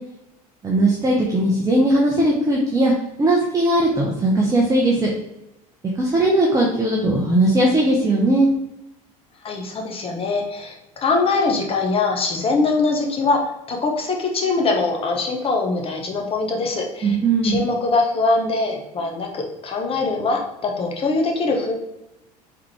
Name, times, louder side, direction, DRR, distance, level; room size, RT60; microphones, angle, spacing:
voice 1, 0.6-2.9 3.2-5.1 6.0-8.5 17.0-17.6, right 1 dB, 15° right, -2 dB, 0.7 m, -18 dB
voice 2, 9.4-17.2 17.4-21.7, left 3 dB, 30° left, 1 dB, 0.9 m, -22 dB
3.7 x 3.4 x 3.0 m, 0.92 s
hypercardioid pair, 75°, 20 cm